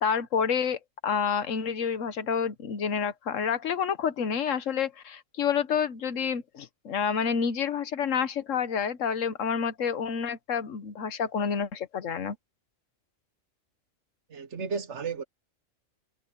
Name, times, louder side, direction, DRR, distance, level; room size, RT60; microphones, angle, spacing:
voice 1, 0.0-12.4, left 7 dB, 75° left, 1.4 m, -29 dB
voice 2, 14.3-15.2, right 5 dB, 60° right, 1.4 m, -33 dB
omnidirectional pair, 1.4 m